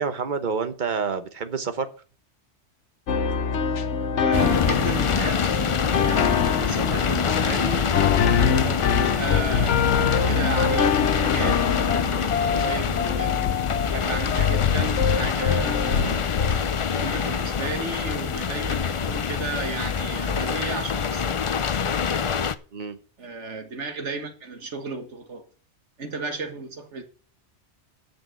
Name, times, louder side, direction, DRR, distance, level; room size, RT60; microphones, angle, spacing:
voice 1, 0.0-1.9 22.7-23.0, right 5 dB, 45° right, 1.2 m, -28 dB
sound 1, 3.1-16.8, left 7 dB, 80° left, 1.2 m, -24 dB
voice 2, 4.1-8.0 8.5-13.4 13.9-16.3 16.9-21.4 23.2-25.5 26.0-27.0, right 3 dB, 75° right, 1.9 m, -33 dB
sound 2, 4.3-22.5, left 6 dB, 45° left, 0.4 m, -26 dB
9.0 x 6.0 x 7.6 m
omnidirectional pair, 1.2 m